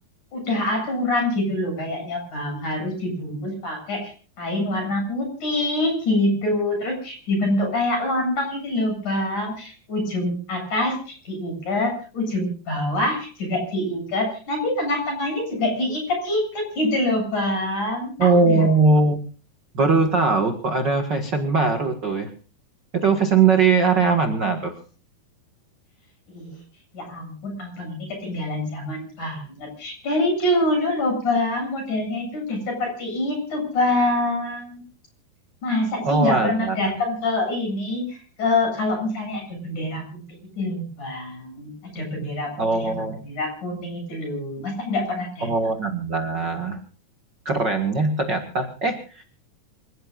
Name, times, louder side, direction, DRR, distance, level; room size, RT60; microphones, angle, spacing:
voice 1, 0.3-4.1 4.4-18.6 26.3-26.6 26.9-34.8 35.6-42.9 43.3-45.5, left 1 dB, 45° left, 3 dB, 9.2 m, -25 dB
voice 2, 18.2-19.2 19.7-22.3 22.9-24.7 36.0-37.0 42.6-43.2 45.4-46.8 47.4-49.2, right 4 dB, 45° right, 5 dB, 1.4 m, -20 dB
27.0 x 17.0 x 2.6 m, 0.40 s
omnidirectional pair, 5.0 m